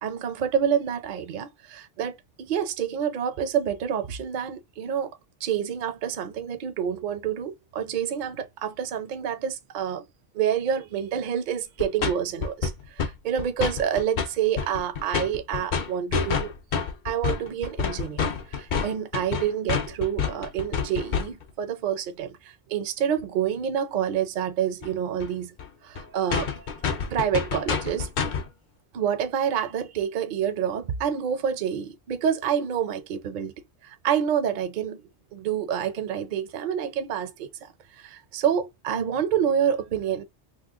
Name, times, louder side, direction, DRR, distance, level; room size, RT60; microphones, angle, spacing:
voice 1, 0.0-5.1 5.4-10.1 10.3-16.5 17.0-25.5 25.8-28.1 28.9-33.5 33.8-35.0 35.3-40.2, right 8 dB, 55° right, 0.6 m, -28 dB
sound 1, 11.8-12.1 12.4-13.1 13.4-14.3 14.6-21.5 24.8-24.9 25.2-25.3 25.6-25.7 26.0-26.1 26.3-28.5, left 6 dB, 55° left, 0.6 m, -28 dB
3.0 x 2.1 x 3.5 m
omnidirectional pair, 1.2 m